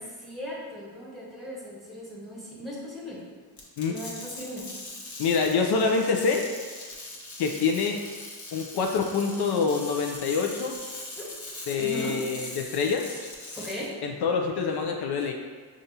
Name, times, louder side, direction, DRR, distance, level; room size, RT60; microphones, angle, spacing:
voice 1, 0.0-3.2 3.9-4.7 11.2-11.3 11.8-12.2 13.6-13.9, equal, ahead, -5 dB, 1.3 m, -38 dB
sound 1, 3.6-13.9, left 2 dB, 45° left, 1.0 m, -41 dB
voice 2, 5.2-6.5 7.4-8.0 8.5-10.8 11.7-13.1 14.0-15.3, left 5 dB, 75° left, 2 dB, 0.5 m, -26 dB
5.1 x 2.4 x 2.8 m, 1.5 s
cardioid pair, 75°, 40 cm